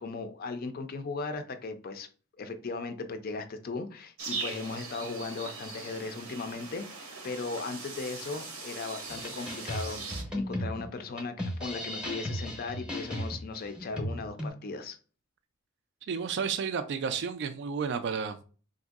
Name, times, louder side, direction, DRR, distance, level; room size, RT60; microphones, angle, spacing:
voice 1, 0.0-2.1 2.4-10.0 10.3-11.3 11.6-15.0, left 3 dB, 45° left, 0.4 m, -37 dB
sound 1, 4.2-10.2, right 4 dB, 85° right, 0.9 m, -40 dB
sound 2, 9.1-14.5, left 1 dB, 5° right, 0.7 m, -36 dB
voice 2, 16.1-18.4, right 6 dB, 55° right, 0.3 m, -32 dB
3.7 x 2.6 x 2.3 m
head